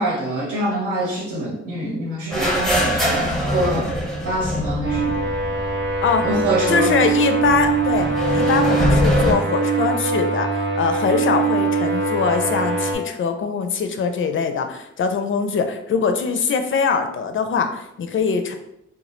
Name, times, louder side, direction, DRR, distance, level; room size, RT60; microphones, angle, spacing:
voice 1, 0.0-4.0 4.2-5.1 6.2-6.9, right 1 dB, 80° right, -4 dB, 1.0 m, -25 dB
sound 1, 2.3-6.1 6.3-6.4 7.4-9.3, equal, ahead, 0.6 m, -22 dB
sound 2, 4.8-13.0, right 4 dB, 35° right, 0.6 m, -22 dB
voice 2, 6.7-8.1 8.3-18.6, left 5 dB, 40° left, 7 dB, 0.4 m, -22 dB
2.1 x 2.0 x 3.0 m, 0.80 s
supercardioid pair, 45°, 31 cm